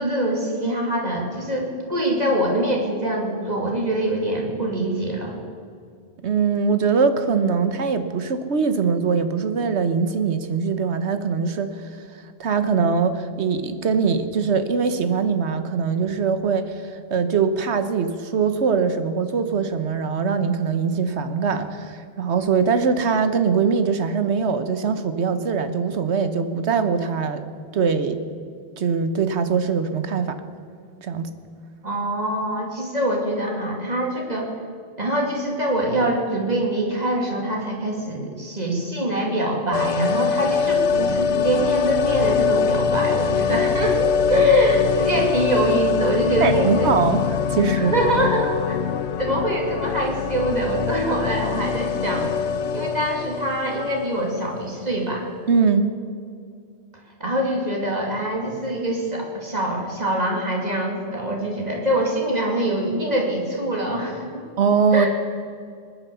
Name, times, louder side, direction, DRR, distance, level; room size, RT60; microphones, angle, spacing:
voice 1, 0.0-5.4 31.8-34.5 35.0-46.9 47.7-48.8 49.2-52.3 52.7-55.3 57.2-64.4 64.9-65.1, right 1 dB, 35° right, -1 dB, 2.7 m, -24 dB
voice 2, 6.2-11.9 12.4-27.4 27.7-28.2 28.8-30.4 31.0-31.3 46.4-48.0 55.5-55.9 64.6-65.1, right 5 dB, 75° right, 9 dB, 1.3 m, -22 dB
sound 1, 39.7-54.6 54.9-55.0, left 6 dB, 80° left, 1.0 m, -23 dB
20.5 x 10.0 x 6.9 m, 2.3 s
omnidirectional pair, 1.2 m